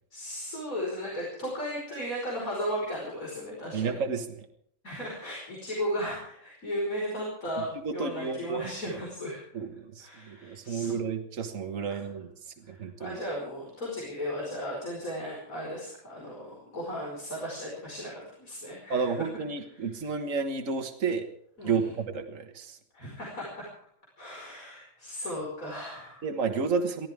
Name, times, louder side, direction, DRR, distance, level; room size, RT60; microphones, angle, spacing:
voice 1, 0.1-4.0 4.8-9.6 10.0-11.0 11.9-12.0 12.7-19.1 19.7-20.1 21.6-21.9 22.9-23.7 24.2-26.3, equal, 85° left, -3 dB, 5.5 m, -36 dB
voice 2, 3.7-4.5 7.8-9.0 9.5-12.3 12.7-13.2 18.9-21.3 21.6-22.8 26.2-27.1, right 5 dB, 70° right, 5 dB, 1.8 m, -31 dB
24.0 x 16.0 x 3.6 m, 0.67 s
omnidirectional pair, 1.4 m